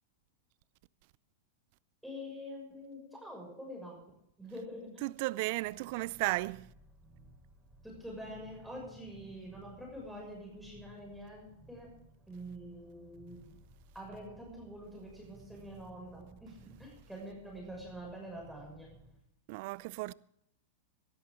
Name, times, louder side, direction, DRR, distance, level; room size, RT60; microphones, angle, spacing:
voice 1, 2.0-4.1 4.4-5.1 7.8-13.6 13.9-19.0, equal, 5° right, 6.6 m, -46 dB
voice 2, 5.0-6.7 19.5-20.1, right 22 dB, 55° right, 0.5 m, -34 dB
sound 1, 5.5-19.2, right 2 dB, 20° right, 3.9 m, -59 dB
19.0 x 13.5 x 3.8 m
hypercardioid pair, 105°, 0 cm